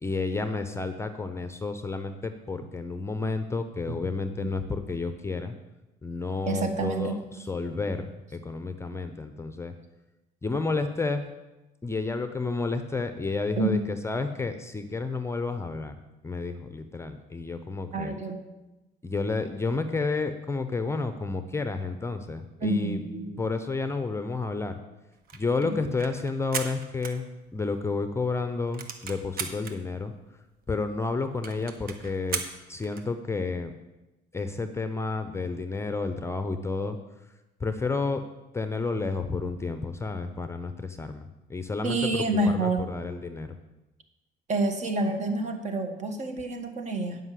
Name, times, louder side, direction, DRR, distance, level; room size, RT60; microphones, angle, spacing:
voice 1, 0.0-5.5 6.0-9.7 10.4-11.3 11.8-18.2 19.0-23.0 23.4-24.8 25.3-30.1 30.7-32.4 32.7-33.7 34.3-37.0 37.6-38.2 38.5-42.2 42.5-43.5, left 3 dB, 15° left, 9 dB, 0.6 m, -31 dB
voice 2, 6.5-7.2 13.6-13.8 17.9-18.4 22.6-23.4 25.6-25.9 41.8-42.9 44.5-47.2, right 2 dB, 45° right, 6 dB, 1.5 m, -28 dB
sound 1, 25.1-27.8 28.2-28.3 28.5-29.7 30.3-30.4 30.6-30.7 31.0-31.1 31.4-33.1, right 6 dB, 60° right, 1.1 m, -36 dB
9.6 x 5.5 x 7.5 m, 1.0 s
cardioid pair, 110°, 17 cm